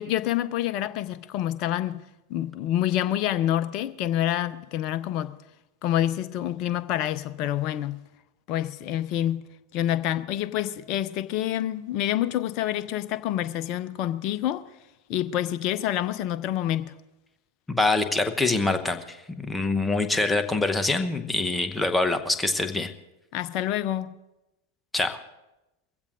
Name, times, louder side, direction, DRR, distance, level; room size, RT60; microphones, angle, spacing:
voice 1, 0.0-2.0 2.3-5.3 5.8-8.0 8.5-9.4 9.7-14.6 15.1-16.9 23.3-24.1, left 12 dB, 40° left, 0.6 m, -27 dB
voice 2, 17.7-22.9 24.9-25.2, left 2 dB, 5° left, 1.0 m, -25 dB
22.5 x 15.5 x 2.6 m
figure-of-eight pair, 90°, 0 cm